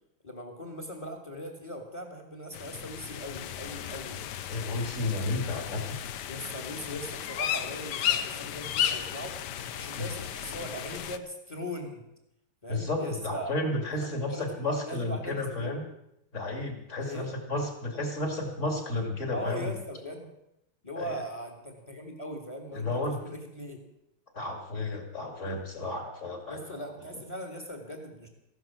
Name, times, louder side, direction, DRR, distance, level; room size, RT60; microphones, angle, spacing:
voice 1, 0.2-4.2 6.3-9.4 9.7-12.0 12.6-13.5 14.0-15.9 17.0-17.3 19.3-20.3 20.8-23.8 26.5-28.3, equal, 15° left, 4 dB, 2.0 m, -40 dB
sound 1, 2.5-11.2, left 10 dB, 65° left, 1.2 m, -34 dB
voice 2, 4.5-6.0 10.0-10.1 12.7-15.9 16.3-19.7 21.0-21.2 22.7-23.2 24.3-26.6, left 2 dB, 35° left, 3 dB, 3.0 m, -32 dB
15.0 x 11.5 x 7.4 m, 0.81 s
omnidirectional pair, 2.2 m